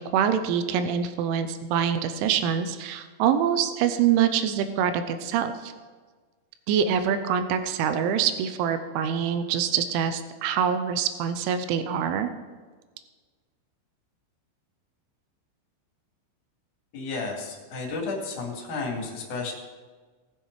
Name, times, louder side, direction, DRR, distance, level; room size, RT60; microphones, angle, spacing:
voice 1, 0.0-5.7 6.7-12.3, right 8 dB, 85° right, 10 dB, 3.1 m, -25 dB
voice 2, 16.9-19.5, left 3 dB, 50° left, -1 dB, 3.2 m, -32 dB
19.0 x 7.4 x 4.7 m, 1.4 s
omnidirectional pair, 5.5 m